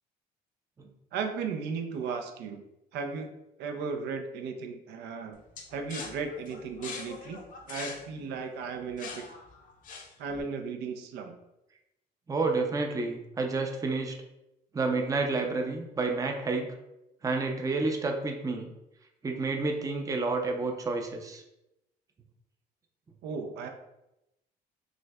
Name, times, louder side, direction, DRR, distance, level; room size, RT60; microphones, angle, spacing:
voice 1, 1.1-2.6 2.9-5.4 5.7-7.4 7.7-9.2 10.2-11.3 23.2-23.7, right 5 dB, 80° right, 5 dB, 0.5 m, -35 dB
sound 1, 5.6-10.4, left 4 dB, 50° left, 0.6 m, -43 dB
voice 2, 12.3-14.1 14.7-16.7 17.2-18.7 19.2-21.4, right 3 dB, 20° right, 3 dB, 0.5 m, -29 dB
6.1 x 2.1 x 2.2 m, 0.89 s
cardioid pair, 110°, 17 cm